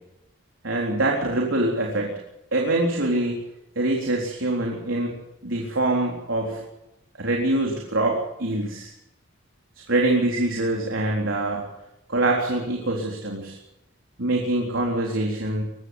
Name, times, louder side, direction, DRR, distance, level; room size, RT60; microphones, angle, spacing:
voice 1, 0.6-2.2 2.5-3.4 3.8-5.2 5.4-6.6 7.2-8.9 9.9-11.6 12.1-13.6 14.2-15.6, right 2 dB, 75° right, -1 dB, 3.9 m, -24 dB
23.0 x 15.5 x 8.0 m, 0.88 s
head